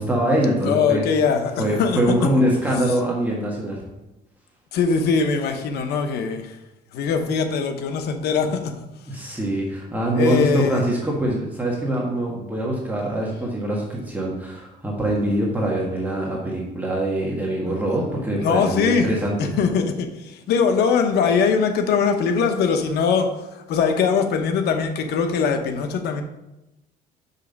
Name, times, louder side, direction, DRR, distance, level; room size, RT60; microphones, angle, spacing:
voice 1, 0.0-1.0 1.6-3.8 9.1-19.4, right 1 dB, 10° right, -4 dB, 1.6 m, -23 dB
voice 2, 0.6-2.0 4.7-6.6 6.9-8.7 9.2-9.4 10.1-10.8 18.4-19.1 19.4-26.2, left 5 dB, 75° left, 6 dB, 0.9 m, -21 dB
6.0 x 5.5 x 5.3 m, 0.95 s
cardioid pair, 110°, 17 cm